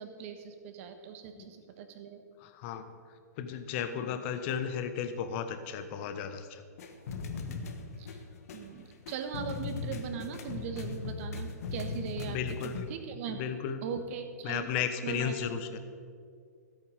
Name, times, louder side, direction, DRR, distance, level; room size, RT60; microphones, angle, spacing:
voice 1, 0.0-2.2 4.0-4.2 8.0-8.2 8.5-12.4 12.6-13.4 13.8-14.7 15.0-15.5, right 7 dB, 45° right, 7 dB, 1.5 m, -40 dB
voice 2, 2.4-2.9 3.4-6.6 12.3-12.8 13.3-13.8 14.4-15.8, left 8 dB, 40° left, 9 dB, 1.1 m, -34 dB
sound 1, 6.8-12.9, left 4 dB, 55° left, 1.4 m, -39 dB
14.0 x 8.6 x 5.3 m, 2.2 s
hypercardioid pair, 120°, 9 cm